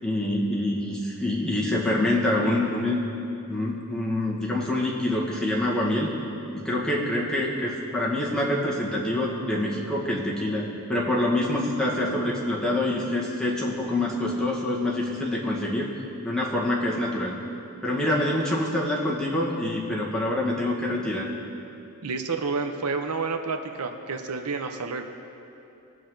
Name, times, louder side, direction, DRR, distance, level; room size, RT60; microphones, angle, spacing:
voice 1, 0.0-3.0 3.5-6.1 6.5-15.9 16.2-17.4 17.8-21.3, left 1 dB, 5° left, -6 dB, 1.8 m, -26 dB
voice 2, 22.0-25.0, right 4 dB, 80° right, 6 dB, 0.8 m, -29 dB
21.0 x 7.2 x 3.9 m, 2.7 s
head